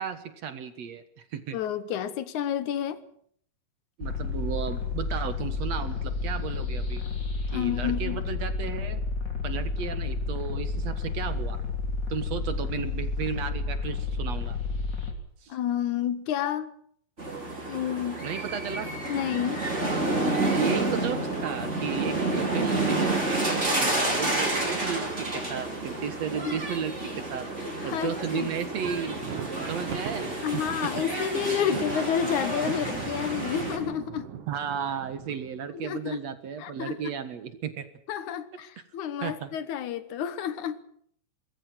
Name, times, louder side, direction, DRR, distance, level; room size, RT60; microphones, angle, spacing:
voice 1, 0.0-1.6 4.0-7.0 7.5-9.0 9.4-11.6 12.1-14.6 15.4-15.6 18.2-18.9 20.4-27.5 27.8-29.2 29.7-30.9 32.7-32.8 34.5-37.9 39.2-39.5, right 7 dB, 60° right, 2.5 m, -34 dB
voice 2, 1.5-3.0 7.5-8.2 15.5-16.7 17.7-18.3 19.1-19.7 26.5-26.6 27.6-28.5 30.4-34.3 35.7-36.2 36.6-37.1 38.1-40.8, left 9 dB, 70° left, 2.4 m, -30 dB
sound 1, 4.0-15.1, left 4 dB, 35° left, 3.7 m, -31 dB
sound 2, 17.2-33.8, right 2 dB, 20° right, 5.3 m, -30 dB
Thunder, 28.5-35.8, right 8 dB, 75° right, 3.2 m, -40 dB
24.0 x 20.5 x 6.2 m
omnidirectional pair, 3.7 m